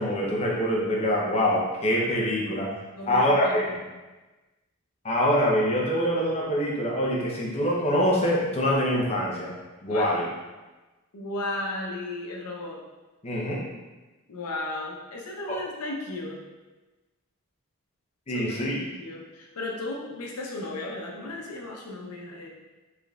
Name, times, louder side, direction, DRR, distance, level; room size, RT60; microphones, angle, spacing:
voice 1, 0.0-2.7 3.1-3.8 5.0-9.5 9.8-10.2 13.2-13.6 15.5-15.6 18.3-18.8, equal, 30° left, -4 dB, 0.6 m, -24 dB
voice 2, 3.0-3.8 9.9-10.1 11.1-12.8 14.3-16.4 18.3-18.7 19.0-22.5, left 2 dB, 90° left, -1 dB, 0.7 m, -35 dB
3.9 x 3.3 x 2.3 m, 1.2 s
head